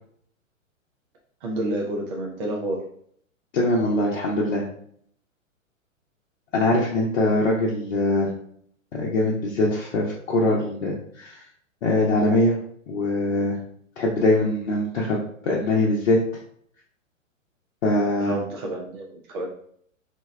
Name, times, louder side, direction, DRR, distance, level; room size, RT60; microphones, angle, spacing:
voice 1, 1.4-2.8 18.2-19.5, right 1 dB, 40° right, -1 dB, 0.6 m, -29 dB
voice 2, 3.5-4.6 6.5-8.3 9.0-11.4 11.8-12.5 12.9-13.6 14.0-16.2 17.8-18.4, left 2 dB, 55° left, -4 dB, 0.8 m, -22 dB
2.8 x 2.2 x 3.2 m, 0.64 s
figure-of-eight pair, 120°, 40 cm